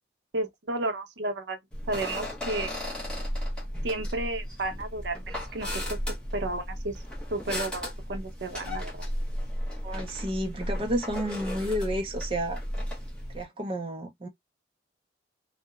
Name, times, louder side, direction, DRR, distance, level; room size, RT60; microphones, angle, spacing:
voice 1, 0.3-1.6 1.9-2.7 3.8-6.0 6.3-7.0 7.3-9.1, right 2 dB, 70° right, 0.6 m, -32 dB
sound 1, 1.7-13.4, equal, 5° left, 0.8 m, -34 dB
voice 2, 9.8-12.6 13.3-14.3, equal, 30° right, 0.4 m, -31 dB
2.8 x 2.0 x 2.3 m
head